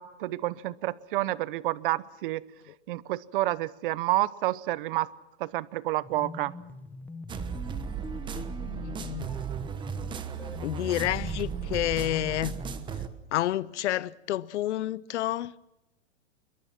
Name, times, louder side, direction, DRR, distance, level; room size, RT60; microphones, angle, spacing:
voice 1, 0.0-2.4 2.9-5.1 5.4-6.5, right 16 dB, 45° right, 0.9 m, -29 dB
sound 1, 6.0-12.9, left 3 dB, 5° left, 0.8 m, -44 dB
sound 2, 7.3-13.1, right 7 dB, 15° right, 1.2 m, -35 dB
voice 2, 8.3-9.3 10.6-12.5 13.3-15.5, left 14 dB, 70° left, 0.8 m, -30 dB
25.5 x 22.5 x 5.9 m
hypercardioid pair, 155°, 36 cm